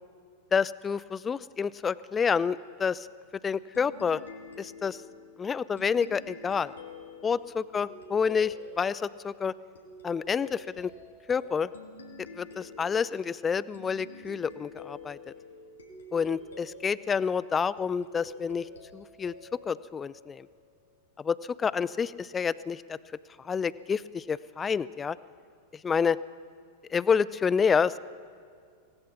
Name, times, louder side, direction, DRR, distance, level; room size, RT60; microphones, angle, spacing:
voice 1, 0.5-3.1 3.4-4.2 4.6-5.0 5.4-6.7 7.2-9.5 10.0-10.9 11.3-11.7 12.4-15.2 16.1-18.6 18.9-19.3 19.7-20.5 21.2-23.0 23.4-25.2 25.8-26.2 26.9-28.0, left 6 dB, 20° left, 19 dB, 0.5 m, -28 dB
sound 1, 3.7-20.9, left 3 dB, 70° left, 2.9 m, -48 dB
25.5 x 19.0 x 6.0 m, 2.2 s
figure-of-eight pair, 90°, 0 cm